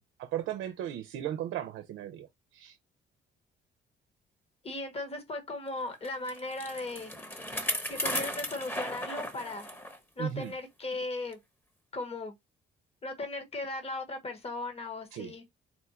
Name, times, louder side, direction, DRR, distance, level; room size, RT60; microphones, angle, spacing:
voice 1, 0.0-2.3 2.5-2.8 10.2-10.5 15.1-15.3, right 11 dB, 85° right, 0.6 m, -36 dB
voice 2, 4.6-7.1 7.9-9.7 10.2-11.4 11.9-12.3 13.0-15.4, left 2 dB, 30° left, 1.2 m, -37 dB
Bicycle, 6.0-10.0 10.4-10.5 11.3-11.4, equal, 10° left, 1.1 m, -36 dB
4.2 x 2.2 x 4.2 m
cardioid pair, 90°, 20 cm